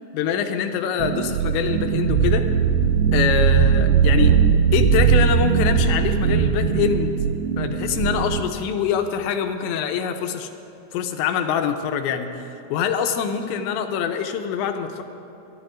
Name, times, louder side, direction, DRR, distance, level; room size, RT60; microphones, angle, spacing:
voice 1, 0.1-2.5 3.1-4.4 4.7-7.2 7.6-10.5 10.9-12.4 12.7-15.0, left 7 dB, 80° left, 6 dB, 2.9 m, -24 dB
sound 1, 1.0-8.4, right 7 dB, 80° right, 2.7 m, -19 dB
26.0 x 12.0 x 2.4 m, 3.0 s
omnidirectional pair, 5.3 m